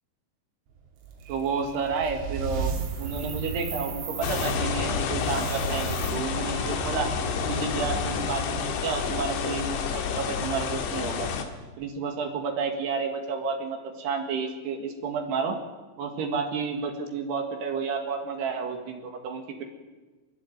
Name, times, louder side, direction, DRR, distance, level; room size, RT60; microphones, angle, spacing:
sound 1, 0.8-10.1, right 5 dB, 85° right, 5.1 m, -35 dB
voice 1, 1.3-7.1 7.5-11.3 11.8-15.6 16.0-19.6, right 5 dB, 65° right, 4 dB, 3.9 m, -31 dB
sound 2, 2.5-4.5 5.2-6.1, right 6 dB, 45° right, 3.8 m, -41 dB
sound 3, 4.2-11.5, left 7 dB, 75° left, 4.0 m, -29 dB
28.0 x 12.0 x 9.1 m, 1.3 s
omnidirectional pair, 5.4 m